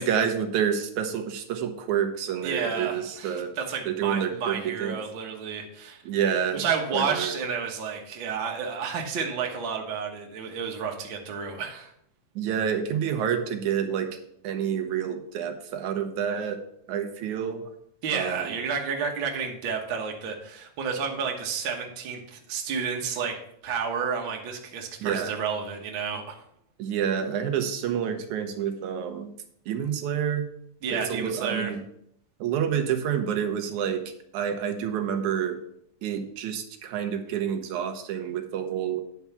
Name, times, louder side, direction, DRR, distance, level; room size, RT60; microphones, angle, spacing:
voice 1, 0.0-3.5 3.9-5.0 6.1-6.6 6.9-7.3 12.4-14.2 14.4-16.6 16.9-17.7 18.1-18.4 25.0-25.3 26.8-29.3 29.7-30.5 30.9-31.8 32.4-34.0 34.3-35.6 36.0-39.0, right 8 dB, 85° right, 6 dB, 2.4 m, -28 dB
voice 2, 2.4-6.0 6.5-11.9 18.0-26.4 30.8-31.7, right 6 dB, 50° right, 1 dB, 1.7 m, -31 dB
9.7 x 4.7 x 7.0 m, 0.72 s
omnidirectional pair, 3.3 m